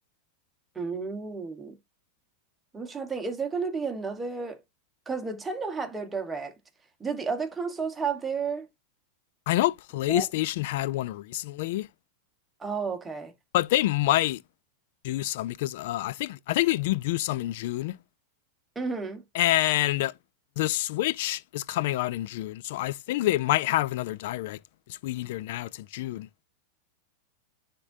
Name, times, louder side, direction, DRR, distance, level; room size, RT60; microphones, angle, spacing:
voice 1, 0.7-1.8 2.7-4.6 5.1-6.5 7.0-8.7 10.1-10.2 12.6-13.3 18.7-19.2, right 5 dB, 10° right, 1.4 m, -32 dB
voice 2, 9.5-11.9 13.5-14.4 15.0-18.0 19.3-20.1 20.6-24.6 24.9-26.3, left 16 dB, 65° left, 0.4 m, -27 dB
9.9 x 3.8 x 2.7 m
supercardioid pair, 130°, 0 cm